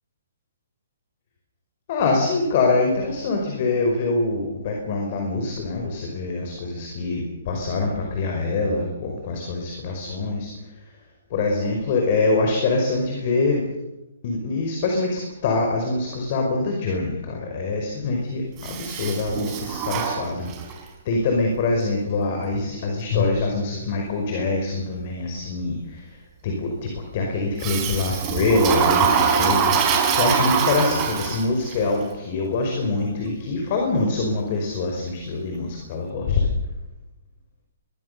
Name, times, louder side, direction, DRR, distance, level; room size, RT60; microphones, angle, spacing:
voice 1, 1.9-10.5 11.3-13.6 14.2-20.5 20.8-26.2 26.4-36.5, left 3 dB, 35° left, 2 dB, 5.4 m, -24 dB
Toilet flush, 18.6-20.8 27.6-31.7, right 6 dB, 20° right, 4.1 m, -23 dB
23.0 x 23.0 x 6.9 m, 0.96 s
hypercardioid pair, 170°, 0 cm